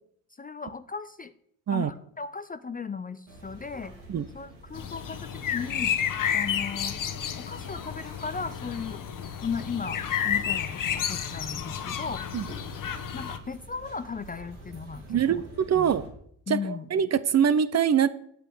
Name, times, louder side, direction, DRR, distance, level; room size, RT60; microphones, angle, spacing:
voice 1, 0.4-1.3 1.7-3.9 4.3-6.0 6.3-7.0 7.4-9.0 9.4-12.2 13.1-15.4 15.7-15.9 16.5-16.9, left 5 dB, 20° left, 13 dB, 0.5 m, -36 dB
sound 1, 3.3-16.1, right 1 dB, 85° right, 3.0 m, -47 dB
sound 2, 4.7-13.4, left 9 dB, 45° left, 1.2 m, -31 dB
voice 2, 15.1-16.1 16.5-18.1, right 8 dB, 35° right, 15 dB, 0.8 m, -24 dB
8.2 x 5.9 x 7.8 m, 0.69 s
hypercardioid pair, 55°, 44 cm